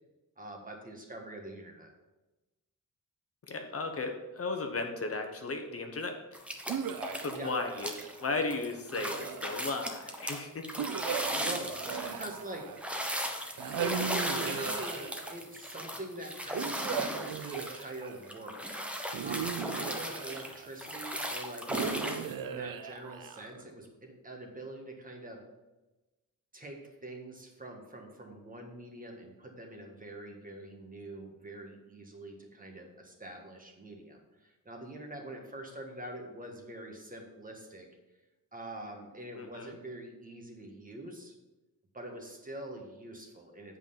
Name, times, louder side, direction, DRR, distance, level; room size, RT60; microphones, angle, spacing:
voice 1, 0.4-1.9 7.3-7.5 11.4-12.7 13.7-18.7 19.2-25.4 26.5-37.9 38.5-41.3 41.9-43.8, right 1 dB, 25° right, 2 dB, 1.4 m, -44 dB
voice 2, 3.5-6.4 7.2-7.9 8.2-10.9 39.4-39.7, left 3 dB, 45° left, 4 dB, 0.9 m, -35 dB
sound 1, 6.3-7.4 7.7-22.3, equal, 5° right, 0.9 m, -37 dB
sound 2, 6.7-8.2 8.9-9.9 10.8-13.0 13.6-15.4 16.5-18.3 19.1-20.8 21.7-23.7, right 8 dB, 85° right, 0.6 m, -38 dB
7.7 x 5.5 x 5.6 m, 1.1 s
wide cardioid pair, 145°, 33 cm